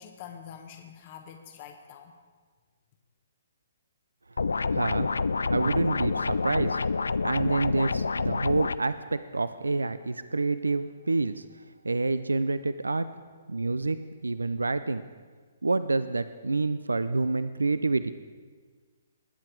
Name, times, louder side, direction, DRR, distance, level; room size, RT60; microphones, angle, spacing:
voice 1, 0.0-2.1, left 8 dB, 40° left, 5 dB, 1.0 m, -45 dB
sound 1, 4.4-8.8, left 4 dB, 80° left, 0.3 m, -28 dB
voice 2, 4.7-5.1 5.5-6.9 7.2-11.4 11.8-13.1 13.5-14.0 14.2-15.0 15.6-18.1, right 3 dB, 90° right, 13 dB, 0.4 m, -27 dB
20.0 x 7.7 x 4.6 m, 1.5 s
figure-of-eight pair, 130°, 0 cm